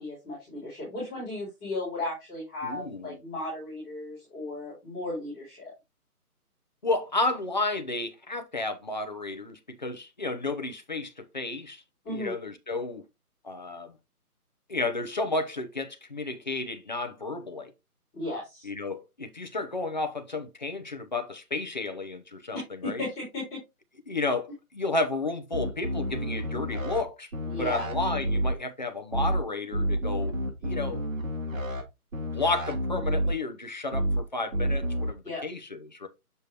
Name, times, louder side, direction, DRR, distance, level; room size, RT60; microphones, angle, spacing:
voice 1, 0.0-5.6 12.0-12.3 18.1-18.7 23.0-23.6 27.5-27.8 35.2-35.4, left 2 dB, ahead, 1.0 m, -35 dB
voice 2, 2.6-3.2 6.8-13.0 13.4-13.9 14.7-17.7 18.6-23.0 24.1-27.3 27.6-31.0 32.3-36.1, left 2 dB, 30° left, 0.7 m, -32 dB
sound 1, 25.5-27.0 27.3-28.5 29.1-29.4 29.7-31.8 32.1-33.3 33.9-34.2 34.5-35.1, equal, 60° right, 2.1 m, -29 dB
6.8 x 5.0 x 2.9 m
figure-of-eight pair, 165°, 45 cm